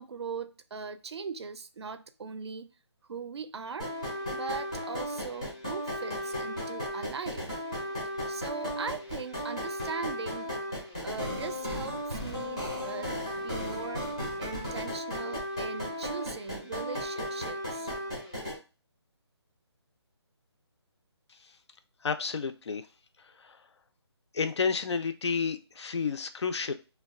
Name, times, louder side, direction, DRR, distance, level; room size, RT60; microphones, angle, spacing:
voice 1, 0.0-2.7 3.1-3.9 4.3-7.5 8.3-10.8 11.0-17.9, right 5 dB, 65° right, 0.4 m, -40 dB
sound 1, 3.8-18.6, left 1 dB, 15° left, 0.4 m, -35 dB
voice 2, 22.0-22.8 23.4-23.6 24.3-26.7, left 5 dB, 75° left, 0.4 m, -30 dB
2.3 x 2.2 x 3.4 m
hypercardioid pair, 180°, 15 cm